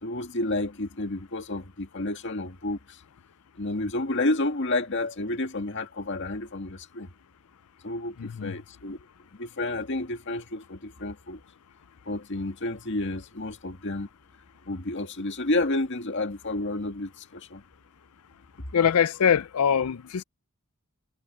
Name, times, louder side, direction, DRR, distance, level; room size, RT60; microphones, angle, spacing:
voice 1, 0.0-3.0 3.6-7.1 7.8-9.0 9.4-11.4 12.1-14.1 14.7-17.6, left 2 dB, 55° left, 2.1 m, -30 dB
voice 2, 8.2-8.5 18.7-20.2, left 7 dB, 85° left, 0.5 m, -23 dB
head